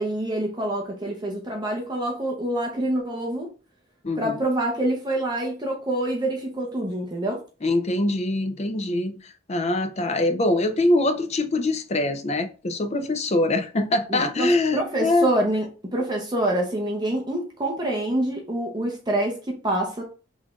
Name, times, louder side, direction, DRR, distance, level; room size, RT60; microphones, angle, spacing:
voice 1, 0.0-3.5 4.2-7.4 14.1-20.0, right 1 dB, 20° right, 0.9 m, -26 dB
voice 2, 4.0-4.4 7.6-15.3, left 2 dB, 35° left, 0.5 m, -23 dB
5.4 x 3.3 x 2.5 m
head